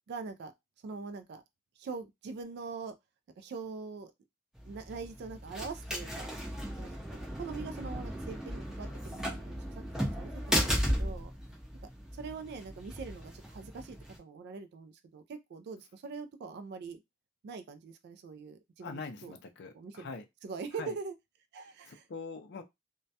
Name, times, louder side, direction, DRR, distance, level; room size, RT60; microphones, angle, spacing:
voice 1, 0.1-0.5 0.8-1.4 1.8-2.9 3.4-4.1 4.6-6.3 6.8-9.6 10.0-11.3 12.1-17.0 17.4-19.3 19.7-20.1 20.4-21.1 21.5-22.0, right 4 dB, 50° right, 0.3 m, -43 dB
sound 1, 4.6-14.2, equal, 5° right, 0.5 m, -36 dB
voice 2, 18.8-20.3 20.7-21.0 21.6-22.6, left 4 dB, 55° left, 0.4 m, -43 dB
2.2 x 2.1 x 2.7 m
head